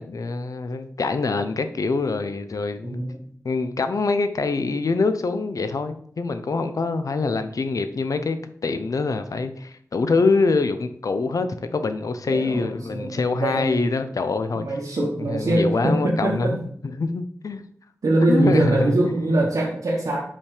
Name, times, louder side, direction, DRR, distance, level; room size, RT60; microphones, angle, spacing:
voice 1, 0.0-3.0 3.4-8.4 8.6-11.5 11.7-14.6 15.3-16.6 17.0-17.6 18.2-18.9 19.3-19.4, left 3 dB, 80° left, 9 dB, 0.7 m, -24 dB
voice 2, 2.8-3.3 12.3-13.7 14.5-16.5 18.0-20.2, right 2 dB, 85° right, -5 dB, 1.3 m, -22 dB
5.4 x 5.3 x 5.0 m, 0.63 s
wide cardioid pair, 70°, 6 cm